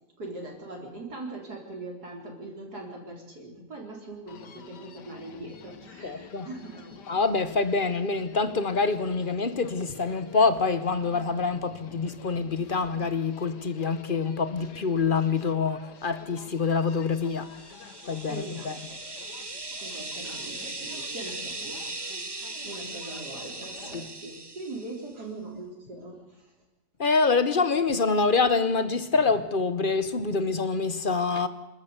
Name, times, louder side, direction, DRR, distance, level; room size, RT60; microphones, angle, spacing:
voice 1, 0.2-6.9 18.3-18.7 19.8-21.8 22.6-26.4, right 2 dB, 60° right, 4.5 m, -41 dB
Human voice, 4.3-24.1, left 6 dB, 65° left, 1.8 m, -48 dB
voice 2, 6.0-6.5 7.1-17.5 18.1-18.8 23.9-24.0 27.0-31.5, left 4 dB, 35° left, 0.9 m, -26 dB
sound 1, 17.3-25.1, right 2 dB, 20° right, 0.9 m, -39 dB
26.5 x 13.0 x 8.2 m
omnidirectional pair, 1.9 m